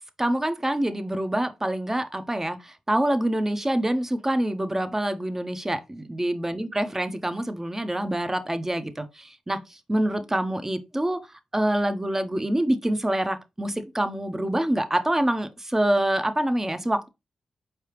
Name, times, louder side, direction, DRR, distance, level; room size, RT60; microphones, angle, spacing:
voice 1, 0.2-11.2 11.5-17.1, right 1 dB, 15° right, 0.6 m, -26 dB
4.6 x 3.3 x 2.9 m
cardioid pair, 45°, 2 cm